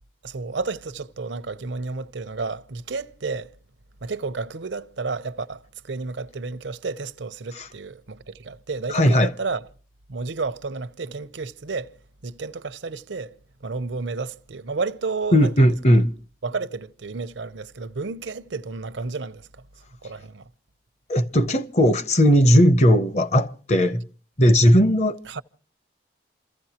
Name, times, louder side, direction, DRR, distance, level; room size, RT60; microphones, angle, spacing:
voice 1, 0.2-3.5 4.0-9.7 10.1-11.9 12.2-16.0 16.4-19.5 20.0-20.5 25.2-25.4, right 4 dB, 85° right, 0.8 m, -31 dB
voice 2, 8.9-9.3 15.3-16.1 21.1-24.0 24.4-25.2, equal, 35° left, 0.7 m, -17 dB
29.0 x 15.0 x 2.9 m
head